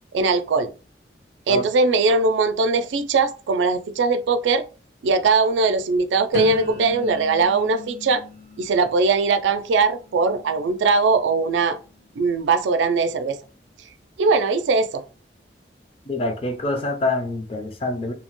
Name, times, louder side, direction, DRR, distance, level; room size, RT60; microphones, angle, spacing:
voice 1, 0.1-0.7 1.5-4.6 5.0-8.2 8.6-11.8 12.2-13.4 14.2-15.0, right 4 dB, 90° right, 0.4 m, -20 dB
sound 1, 6.3-12.2 12.7-13.1, left 4 dB, 70° left, 1.0 m, -39 dB
voice 2, 16.1-18.1, left 2 dB, 30° left, 0.4 m, -25 dB
2.7 x 2.1 x 2.9 m
head